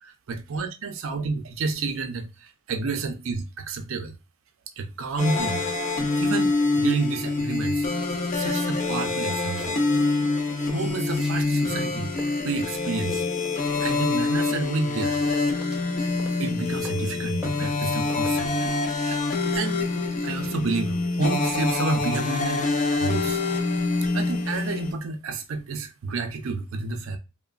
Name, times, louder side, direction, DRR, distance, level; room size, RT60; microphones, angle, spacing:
voice 1, 0.0-4.1 4.8-5.6 6.2-9.7 10.7-13.2 13.8-15.2 16.4-18.6 19.0-19.2 19.5-19.8 20.2-22.7 23.0-23.4 24.1-27.2, right 3 dB, 70° right, 0.5 m, -30 dB
sound 1, 5.2-24.9, left 3 dB, 40° left, 0.4 m, -26 dB
sound 2, 9.5-10.2 10.6-11.4 11.8-14.4 15.0-17.1 17.4-18.4, equal, 5° right, 0.6 m, -45 dB
3.0 x 2.1 x 2.4 m
head